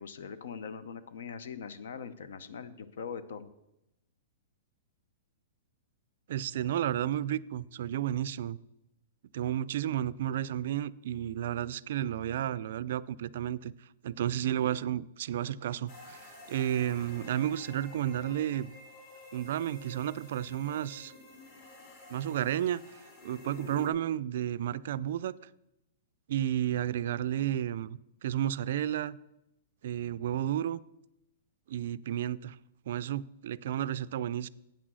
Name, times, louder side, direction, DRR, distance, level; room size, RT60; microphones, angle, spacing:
voice 1, 0.0-3.5, left 6 dB, 75° left, 14 dB, 0.7 m, -42 dB
voice 2, 6.3-8.6 9.3-13.7 14.0-18.7 19.3-21.1 22.1-22.8 23.2-25.3 26.3-29.2 29.8-30.8 31.7-32.6 32.9-34.5, right 11 dB, 60° right, 18 dB, 0.3 m, -32 dB
sound 1, 15.9-23.9, left 2 dB, 40° left, 2.4 m, -50 dB
8.5 x 6.1 x 6.2 m, 0.87 s
hypercardioid pair, 165°, 0 cm